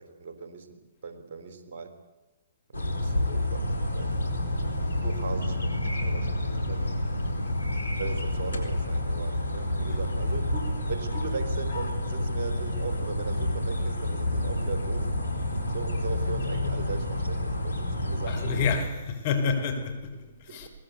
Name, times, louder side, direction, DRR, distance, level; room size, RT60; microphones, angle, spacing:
voice 1, 0.0-2.0 2.7-3.7 3.9-4.1 5.0-6.4 6.7-6.9 8.0-15.1 15.7-18.6 20.5-20.7, right 5 dB, 50° right, 4.0 m, -38 dB
sound 1, 2.7-18.8, left 1 dB, 80° left, 4.0 m, -29 dB
voice 2, 18.3-20.7, left 5 dB, 45° left, 5.4 m, -29 dB
23.0 x 18.0 x 8.3 m
figure-of-eight pair, 125°, 0 cm